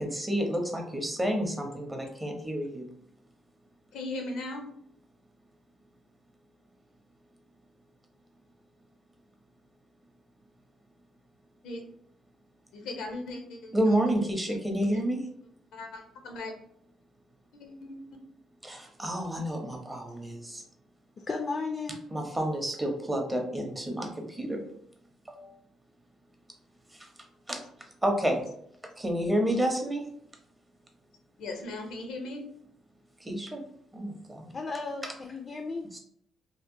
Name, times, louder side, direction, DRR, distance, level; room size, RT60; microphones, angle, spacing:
voice 1, 0.0-2.9 13.7-15.3 18.6-20.6 22.1-24.6 25.3-25.5 26.9-27.1 27.5-27.6 28.0-28.5 29.0-30.1 33.2-33.6 33.9-34.5 35.0-35.1 35.9-36.0, right 1 dB, 15° right, 2 dB, 0.6 m, -30 dB
voice 2, 3.9-4.6 11.6-11.8 12.7-14.0 14.5-14.6 14.9-15.0 15.7-16.5 17.5-18.2 31.4-32.4, left 2 dB, 85° left, 3 dB, 0.6 m, -38 dB
voice 3, 21.2-22.0 34.5-35.8, left 3 dB, 35° left, 4 dB, 0.3 m, -34 dB
2.8 x 2.0 x 2.5 m, 0.69 s
cardioid pair, 90°, 0 cm